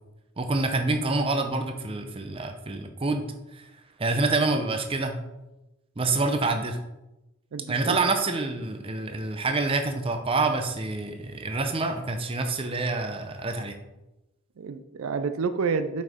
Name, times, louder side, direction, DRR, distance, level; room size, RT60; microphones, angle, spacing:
voice 1, 0.4-3.2 3.5-3.6 4.0-5.2 6.0-6.8 7.7-13.8, right 3 dB, 25° right, 6 dB, 0.6 m, -27 dB
voice 2, 7.5-8.0 14.6-16.0, right 5 dB, 70° right, 10 dB, 0.4 m, -29 dB
6.3 x 5.4 x 3.6 m, 0.96 s
head